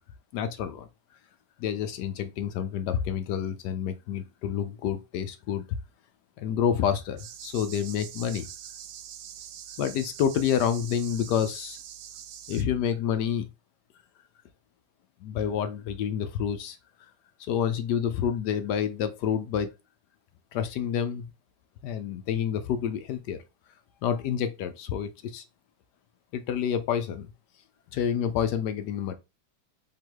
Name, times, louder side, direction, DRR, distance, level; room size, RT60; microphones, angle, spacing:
voice 1, 0.3-0.9 1.6-5.6 6.4-8.5 9.8-11.8 12.5-13.5 15.2-17.1 17.5-19.7 20.5-21.3 21.8-23.4 24.0-25.4 26.3-27.3 27.9-29.1, left 8 dB, 70° left, 1.0 m, -28 dB
sound 1, 7.2-12.6, right 9 dB, 90° right, 1.4 m, -44 dB
3.8 x 2.9 x 4.6 m
omnidirectional pair, 2.2 m